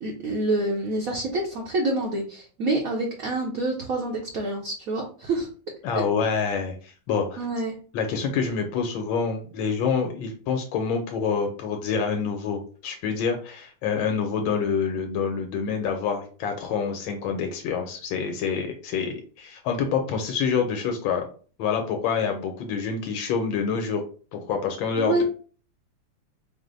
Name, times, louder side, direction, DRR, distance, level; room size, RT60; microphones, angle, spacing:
voice 1, 0.0-5.5 5.9-6.0 7.4-7.8 25.0-25.2, right 2 dB, 60° right, -1 dB, 1.0 m, -27 dB
voice 2, 5.8-7.4 7.9-21.2 21.6-24.0 24.3-25.2, left 6 dB, 90° left, 4 dB, 1.4 m, -27 dB
4.9 x 2.0 x 3.9 m, 0.40 s
omnidirectional pair, 2.1 m